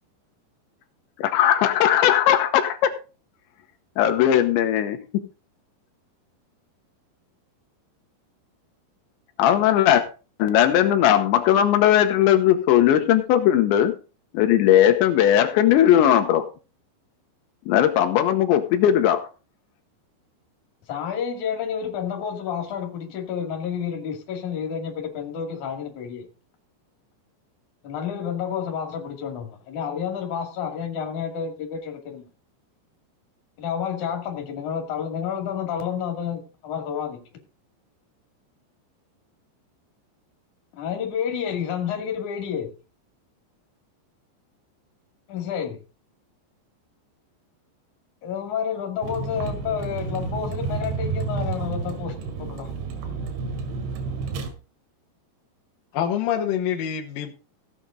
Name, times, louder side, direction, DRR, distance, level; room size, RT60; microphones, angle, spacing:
voice 1, 1.2-2.9 4.0-5.0 9.4-10.0 10.4-13.9 14.3-16.4 17.7-19.3, left 11 dB, 85° left, 3.3 m, -18 dB
voice 2, 20.9-26.3 27.8-32.2 33.6-37.2 40.7-42.7 45.3-45.8 48.2-52.7, left 7 dB, 50° left, 3.3 m, -30 dB
Vehicle, 49.0-54.5, right 4 dB, 85° right, 4.2 m, -30 dB
voice 3, 55.9-57.3, left 9 dB, 65° left, 2.4 m, -26 dB
15.5 x 8.4 x 3.8 m
omnidirectional pair, 5.2 m